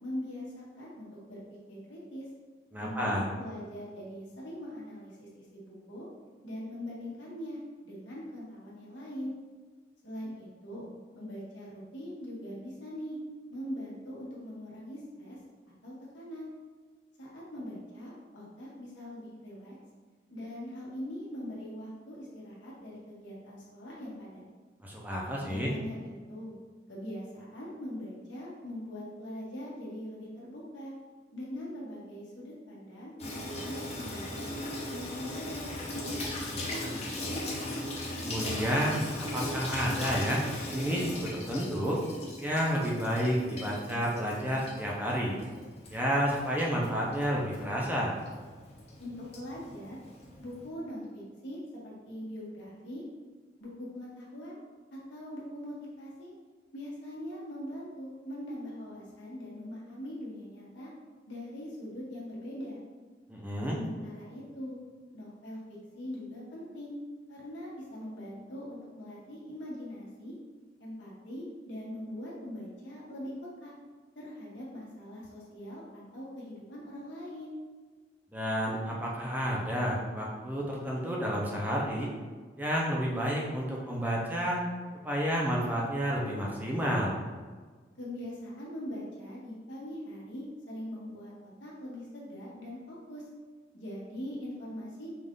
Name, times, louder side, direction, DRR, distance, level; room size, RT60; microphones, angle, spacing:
voice 1, 0.0-1.4 1.7-2.2 2.8-6.1 6.4-9.3 10.0-10.9 11.1-13.2 13.5-15.4 15.8-16.5 17.2-19.7 20.3-24.4 25.5-26.5 26.9-30.9 31.3-34.5 34.9-37.4 49.0-50.0 50.4-53.0 53.6-54.6 54.9-56.3 56.7-60.9 61.3-62.8 63.7-64.8 65.1-65.6 65.9-66.9 67.3-70.3 70.8-73.3 73.6-73.7 74.1-77.5 88.0-93.2 93.7-95.1, equal, 80° left, -6 dB, 1.4 m, -42 dB
voice 2, 2.7-3.3 24.8-25.7 38.2-40.4 40.7-42.0 42.4-45.4 45.9-48.1 63.3-63.8 78.3-82.1 82.6-84.6 85.0-87.2, equal, 10° right, -4 dB, 0.6 m, -30 dB
Water tap faucet / Sink (filling or washing), 33.2-50.7, left 1 dB, 35° left, 0.8 m, -39 dB
5.3 x 2.5 x 3.7 m, 1.4 s
head